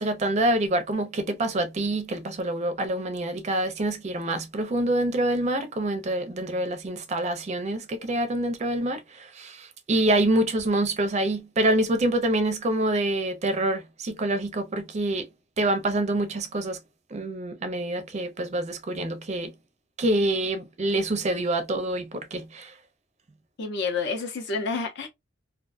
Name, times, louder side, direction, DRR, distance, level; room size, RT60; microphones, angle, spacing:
voice 1, 0.0-15.3 15.6-16.8 17.1-19.5 20.0-22.7, right 1 dB, 35° right, 0.4 m, -26 dB
voice 2, 23.6-25.1, left 4 dB, 60° left, 0.6 m, -29 dB
2.4 x 2.2 x 2.4 m
head